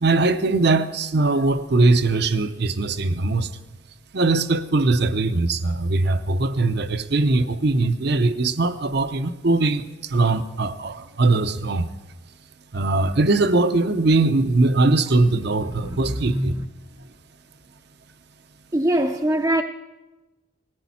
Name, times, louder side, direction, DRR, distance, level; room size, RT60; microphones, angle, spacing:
voice 1, 0.0-3.5 4.1-11.9 12.7-16.5, right 3 dB, 55° right, 0.7 m, -21 dB
voice 2, 15.7-16.6 18.7-19.6, right 1 dB, 20° right, 0.5 m, -23 dB
18.5 x 14.5 x 4.2 m
head